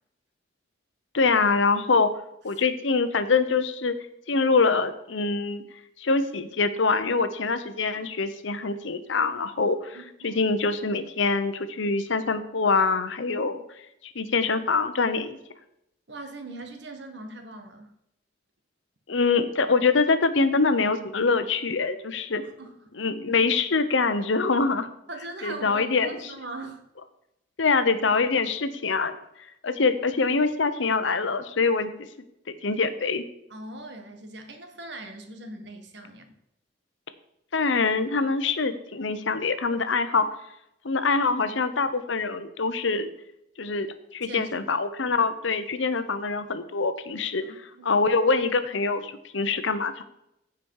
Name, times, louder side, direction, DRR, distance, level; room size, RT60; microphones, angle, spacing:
voice 1, 1.1-2.1 2.4-3.9 4.3-5.6 6.0-10.0 10.2-13.6 14.1-15.4 19.1-22.4 23.0-24.9 25.4-26.1 27.6-29.1 29.6-31.9 32.5-33.2 37.5-40.3 40.8-43.1 43.6-43.9 44.1-47.4 47.8-50.0, left 4 dB, 80° left, 11 dB, 0.8 m, -24 dB
voice 2, 9.9-10.4 16.1-17.9 22.4-22.9 25.1-26.8 33.5-36.3 44.2-44.5 47.4-48.0, right 2 dB, 60° right, 6 dB, 1.4 m, -40 dB
15.0 x 5.1 x 4.7 m, 0.81 s
head